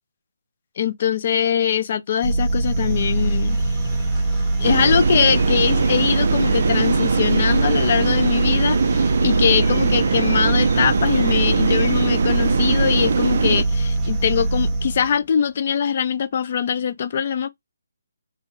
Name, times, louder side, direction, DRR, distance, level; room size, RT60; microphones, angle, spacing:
voice 1, 0.8-3.6 4.6-17.5, left 8 dB, 30° left, 0.5 m, -22 dB
sound 1, 2.2-15.2, right 2 dB, 5° right, 1.0 m, -22 dB
sound 2, 3.1-12.2, left 1 dB, 70° left, 2.1 m, -35 dB
sound 3, 4.6-13.6, right 5 dB, 40° right, 0.4 m, -22 dB
3.7 x 2.1 x 3.8 m
hypercardioid pair, 180°, 0 cm